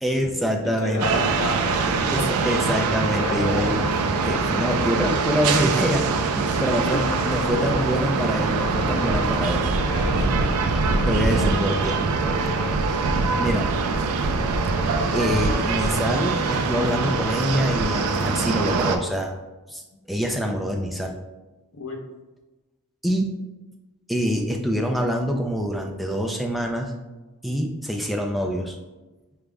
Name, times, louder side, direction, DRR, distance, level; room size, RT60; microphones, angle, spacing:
voice 1, 0.0-1.2 2.0-3.8 4.2-9.7 11.1-12.0 13.4-13.7 15.1-19.3 19.7-19.8 20.1-21.2 23.0-23.3 24.1-26.9 27.4-28.8, equal, ahead, 2 dB, 0.3 m, -25 dB
voice 2, 0.6-2.2 2.6-2.8 3.1-4.0 6.5-8.0 9.8-10.3 12.3-12.6 21.7-22.0, left 1 dB, 65° left, 1 dB, 0.7 m, -31 dB
sound 1, 1.0-19.0, right 4 dB, 75° right, 0.4 m, -23 dB
4.8 x 2.1 x 3.4 m, 1.2 s
head